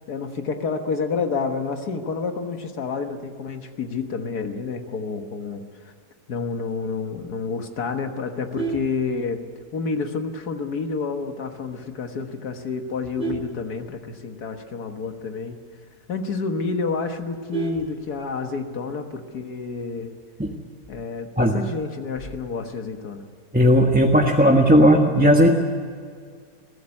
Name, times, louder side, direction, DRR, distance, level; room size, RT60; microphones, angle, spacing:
voice 1, 0.1-5.9 6.3-9.4 9.7-15.6 16.1-20.1 20.9-23.3, left 4 dB, 85° left, 5 dB, 1.9 m, -29 dB
Vehicle horn car horn honking, 8.3-9.8 10.2-10.5 10.8-10.9 11.3-11.4 11.7-12.1 12.6-14.5 14.8-14.9 15.2-15.3 15.7-15.8 16.2-16.3 16.5-18.6 19.8-20.2, right 4 dB, 45° right, 2.5 m, -33 dB
voice 2, 23.5-25.5, equal, 5° right, 1 dB, 1.3 m, -16 dB
22.5 x 16.0 x 9.8 m, 2.1 s
omnidirectional pair, 1.6 m